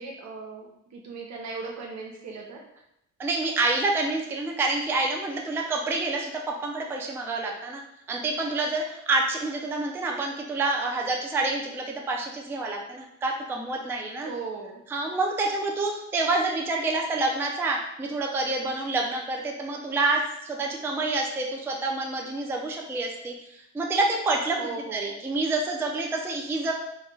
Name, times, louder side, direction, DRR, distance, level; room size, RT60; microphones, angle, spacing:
voice 1, 0.0-2.7 14.2-14.8 24.6-25.2, right 4 dB, 65° right, 1 dB, 0.7 m, -38 dB
voice 2, 3.2-7.8 8.1-14.3 14.9-24.6 24.9-26.7, right 2 dB, 10° right, 0 dB, 0.3 m, -28 dB
2.3 x 2.1 x 3.1 m, 0.80 s
cardioid pair, 90°, 30 cm